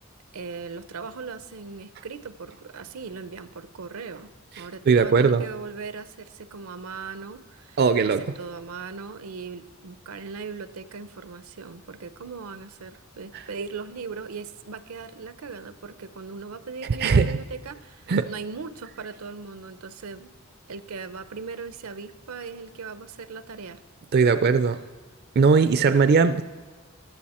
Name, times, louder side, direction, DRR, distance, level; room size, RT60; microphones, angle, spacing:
voice 1, 0.3-20.3 20.7-23.8, right 5 dB, 85° right, 14 dB, 0.7 m, -38 dB
voice 2, 4.6-5.4 7.8-8.2 13.3-13.4 17.0-17.4 18.1-18.3 24.1-24.8 25.4-26.4, right 5 dB, 50° right, 11 dB, 0.4 m, -19 dB
14.5 x 11.5 x 4.3 m, 1.4 s
head